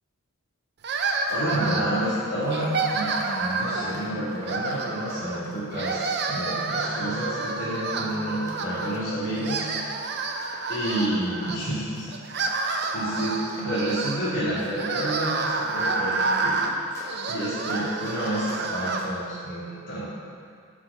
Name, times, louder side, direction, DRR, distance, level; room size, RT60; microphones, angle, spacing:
sound 1, 0.8-2.1 2.5-4.0 4.4-5.4 5.7-9.0 9.3-11.6 12.1-19.1, right 3 dB, 50° right, 0.6 m, -29 dB
Run, 1.1-18.6 19.0-19.3, left 1 dB, 15° left, 1.1 m, -48 dB
voice 1, 1.3-9.7 10.7-12.1 12.9-16.6 17.3-20.0, right 1 dB, 75° left, -12 dB, 2.0 m, -29 dB
7.3 x 4.7 x 6.6 m, 2.3 s
head